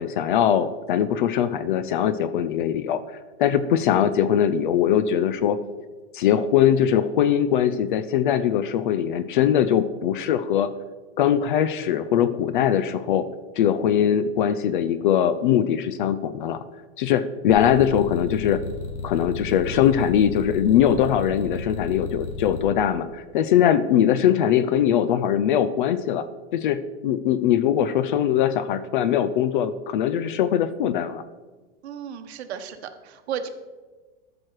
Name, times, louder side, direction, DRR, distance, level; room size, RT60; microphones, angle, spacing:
voice 1, 0.0-3.0 3.4-5.6 6.1-10.7 11.2-13.3 13.6-16.6 17.0-18.6 19.0-26.2 26.5-31.2, left 9 dB, 45° left, 13 dB, 0.5 m, -21 dB
sound 1, 17.5-22.6, left 3 dB, 90° left, 2.9 m, -33 dB
voice 2, 31.8-33.5, right 8 dB, 65° right, 7 dB, 1.2 m, -34 dB
13.5 x 6.3 x 4.7 m, 1.3 s
supercardioid pair, 160°, 35 cm